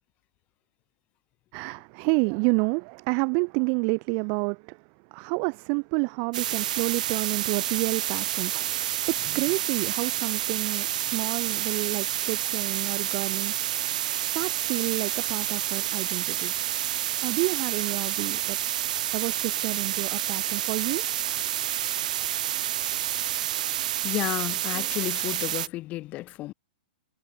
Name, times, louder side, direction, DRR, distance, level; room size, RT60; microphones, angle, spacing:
voice 1, 1.5-16.5 17.2-18.6 19.1-21.0, right 40 dB or more, 40° right, 2.3 m, -29 dB
sound 1, 6.3-25.7, right 12 dB, 60° right, 0.5 m, -29 dB
voice 2, 24.0-26.5, left 17 dB, 30° left, 0.7 m, -32 dB
hypercardioid pair, 120°, 5 cm